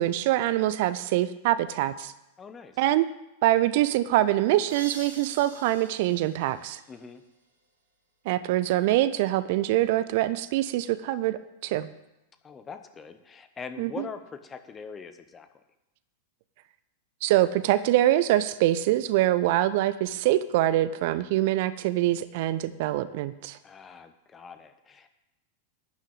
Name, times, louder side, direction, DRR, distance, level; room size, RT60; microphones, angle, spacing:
voice 1, 0.0-2.1 2.8-3.1 3.4-6.8 8.3-11.9 13.8-14.1 17.2-23.6, right 14 dB, 50° right, 14 dB, 0.6 m, -24 dB
voice 2, 2.4-2.8 6.9-7.2 12.4-15.5 23.6-25.1, left 5 dB, 20° left, 9 dB, 1.2 m, -42 dB
sound 1, 4.7-7.4, right 3 dB, 70° right, 3.0 m, -45 dB
11.5 x 6.4 x 8.7 m, 0.96 s
figure-of-eight pair, 90°, 0 cm